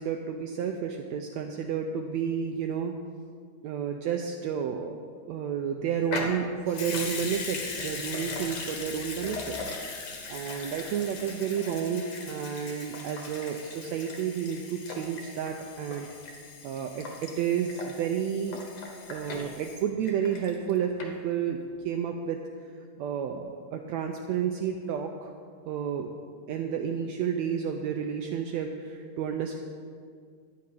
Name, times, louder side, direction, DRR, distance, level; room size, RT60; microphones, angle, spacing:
voice 1, 0.0-2.9 3.6-9.6 10.3-16.1 16.6-18.6 19.1-21.6 21.8-22.4 23.0-25.3 25.6-26.1 26.5-29.6, right 8 dB, 90° right, 4 dB, 1.5 m, -31 dB
Water tap faucet / Sink (filling or washing) / Liquid, 6.1-20.7 21.0-21.1, left 4 dB, 60° left, 2.2 m, -39 dB
12.5 x 9.3 x 5.4 m, 2.1 s
omnidirectional pair, 3.8 m